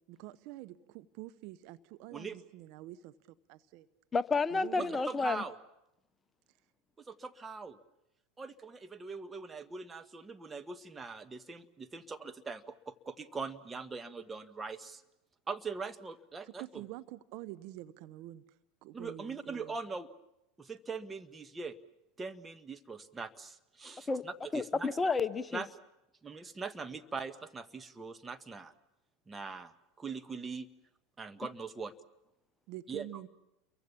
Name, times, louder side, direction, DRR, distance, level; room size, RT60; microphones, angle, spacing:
voice 1, 0.1-3.2 3.5-3.9 4.5-5.0 16.5-18.4 18.8-19.8 32.7-33.3, right 16 dB, 55° right, 13 dB, 0.9 m, -47 dB
voice 2, 4.1-5.4 24.1-24.2 24.5-25.6, left 4 dB, 20° left, 14 dB, 0.9 m, -30 dB
voice 3, 4.8-5.5 7.1-7.8 8.4-15.0 15.5-16.8 18.9-20.1 20.6-21.8 22.2-24.9 25.5-25.7 26.2-28.7 29.3-29.7 30.0-30.7 31.2-31.9 32.9-33.1, right 4 dB, 20° right, 9 dB, 1.5 m, -42 dB
29.5 x 23.0 x 7.2 m, 0.88 s
hypercardioid pair, 80°, 0 cm